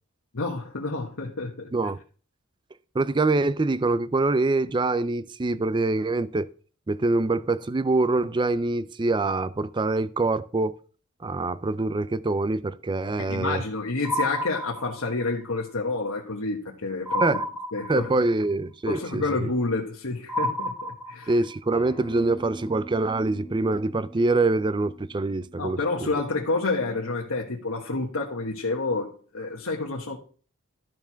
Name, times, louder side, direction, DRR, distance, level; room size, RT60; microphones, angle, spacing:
voice 1, 0.3-1.7 13.2-17.4 17.7-18.1 18.9-21.3 25.6-30.2, left 3 dB, 75° left, 1.4 m, -29 dB
voice 2, 2.9-6.5 6.9-10.8 11.2-13.6 17.2-17.4 17.9-19.5 21.3-26.1, right 2 dB, 20° right, 0.4 m, -25 dB
sound 1, 14.0-15.3 17.1-18.3 20.3-21.5, left 1 dB, ahead, 1.8 m, -30 dB
Acoustic guitar, 21.7-26.9, right 1 dB, 15° left, 1.4 m, -44 dB
13.0 x 4.8 x 5.7 m
head